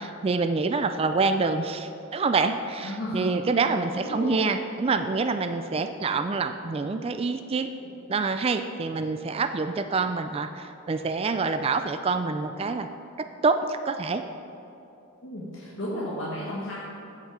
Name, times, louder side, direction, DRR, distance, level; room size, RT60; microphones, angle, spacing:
voice 1, 0.0-7.7 8.1-12.9 13.4-14.2, right 4 dB, 30° right, 8 dB, 0.3 m, -26 dB
voice 2, 2.8-3.4 3.9-4.5 7.8-7.9 15.2-16.7, equal, 60° left, -7 dB, 1.7 m, -33 dB
14.0 x 6.6 x 4.8 m, 2.8 s
head